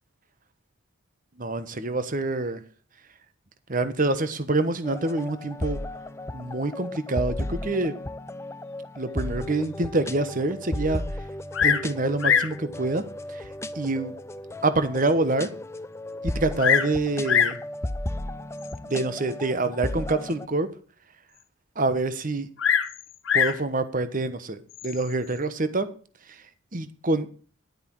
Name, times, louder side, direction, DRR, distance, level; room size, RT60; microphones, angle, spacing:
voice 1, 1.4-2.6 3.7-5.8 6.3-7.9 9.0-11.0 11.6-13.0 13.7-14.1 14.6-15.5 16.2-17.6 18.9-20.7 21.8-22.5 23.3-24.6 24.8-25.9 26.7-27.3, right 2 dB, 40° right, 12 dB, 1.2 m, -26 dB
sound 1, 4.8-20.5, left 1 dB, 15° left, 0.5 m, -35 dB
Bird vocalization bird call bird song, 11.5-11.9 12.2-12.6 13.4-13.5 14.2-14.3 14.8-14.9 15.1-15.2 16.2-16.9 17.3-17.6 18.6-19.0 22.6-23.6 24.7-25.1, left 8 dB, 65° left, 0.8 m, -23 dB
11.0 x 9.5 x 4.6 m, 0.41 s
head